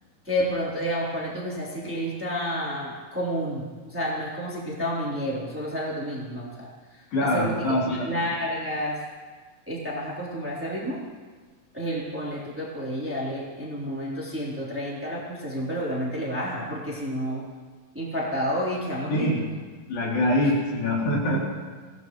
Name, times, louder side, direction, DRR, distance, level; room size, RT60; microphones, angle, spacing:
voice 1, 0.2-9.0 9.7-11.0 11.7-17.4 17.9-19.4 20.4-20.5, equal, 5° right, -6 dB, 3.2 m, -30 dB
voice 2, 7.1-8.1 19.1-19.4 19.9-21.4, left 1 dB, 75° left, -5 dB, 5.3 m, -24 dB
25.0 x 17.5 x 3.2 m, 1.5 s
omnidirectional pair, 4.2 m